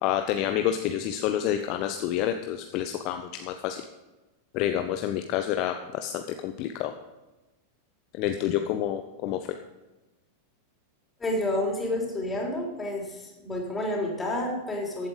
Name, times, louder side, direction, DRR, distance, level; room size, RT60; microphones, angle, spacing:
voice 1, 0.0-3.8 4.5-6.9 8.1-9.5, left 11 dB, 40° left, 7 dB, 0.8 m, -28 dB
voice 2, 11.2-15.1, left 1 dB, 15° left, -1 dB, 4.0 m, -29 dB
14.5 x 8.7 x 5.2 m, 1.1 s
figure-of-eight pair, 90°, 0 cm